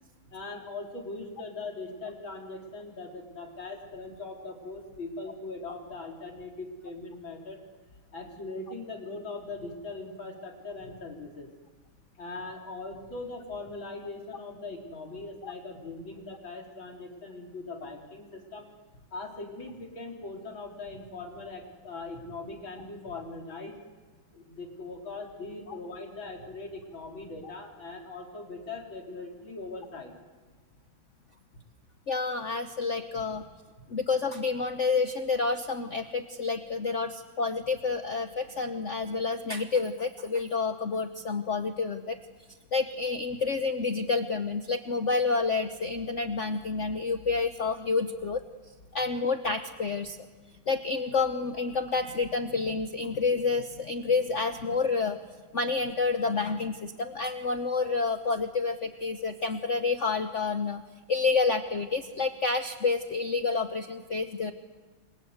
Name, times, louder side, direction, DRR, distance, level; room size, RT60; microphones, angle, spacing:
voice 1, 0.3-7.6 8.1-11.5 12.2-18.7 19.1-23.8 24.3-30.1 33.1-33.2, left 3 dB, 80° left, 1 dB, 4.6 m, -40 dB
voice 2, 32.1-33.4 33.9-42.2 42.7-48.4 48.9-50.2 50.7-55.2 55.5-60.8 61.1-64.5, left 4 dB, 45° left, 7 dB, 1.1 m, -29 dB
29.0 x 24.5 x 8.2 m, 1.3 s
omnidirectional pair, 2.1 m